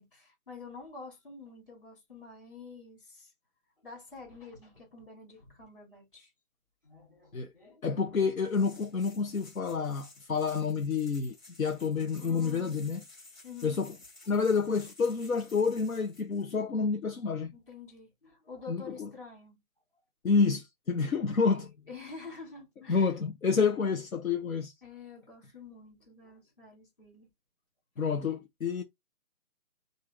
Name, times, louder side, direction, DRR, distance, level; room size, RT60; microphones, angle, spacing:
voice 1, 0.0-3.3 3.8-6.3 6.8-7.9 12.2-12.8 13.4-13.8 14.2-14.4 16.5-16.6 17.5-19.6 21.4-23.2 24.8-27.3, left 4 dB, 35° left, 3.2 m, -48 dB
voice 2, 7.8-13.0 13.6-13.9 14.3-17.5 18.7-19.1 20.2-21.7 22.9-24.7 28.0-28.8, left 5 dB, 65° left, 1.0 m, -29 dB
sound 1, 8.4-16.5, left 2 dB, 15° left, 2.7 m, -55 dB
4.7 x 2.7 x 3.7 m
hypercardioid pair, 175°, 44 cm